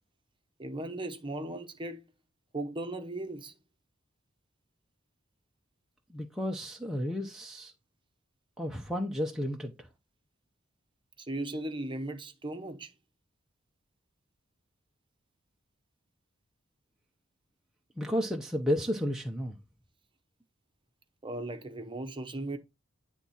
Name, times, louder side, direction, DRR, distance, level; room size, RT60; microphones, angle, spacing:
voice 1, 0.6-2.0 2.5-3.5 11.2-12.9 21.2-22.6, right 1 dB, 25° right, 0.9 m, -37 dB
voice 2, 6.1-7.7 8.6-9.9 18.0-19.6, equal, ahead, 0.7 m, -32 dB
9.7 x 3.6 x 4.2 m
head